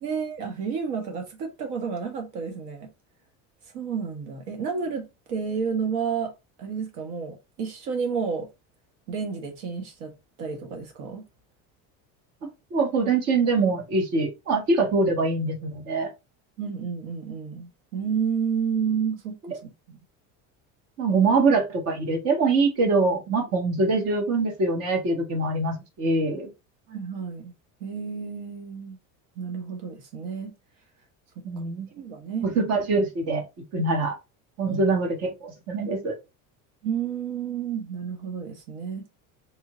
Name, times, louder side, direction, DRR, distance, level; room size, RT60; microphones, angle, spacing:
voice 1, 0.0-2.9 3.7-6.3 6.6-8.5 9.1-10.1 10.4-11.2 16.6-20.0 26.9-27.5 27.8-29.0 29.4-30.5 31.9-32.5 34.7-34.8 35.7-35.9 36.8-39.1, right 6 dB, 75° right, 1.2 m, -31 dB
voice 2, 12.7-16.1 19.5-19.6 21.0-26.5 31.4-31.9 32.4-33.4 33.7-34.2 34.6-36.1, right 3 dB, 40° right, 1.3 m, -24 dB
3.7 x 2.5 x 4.1 m
cardioid pair, 175°, 37 cm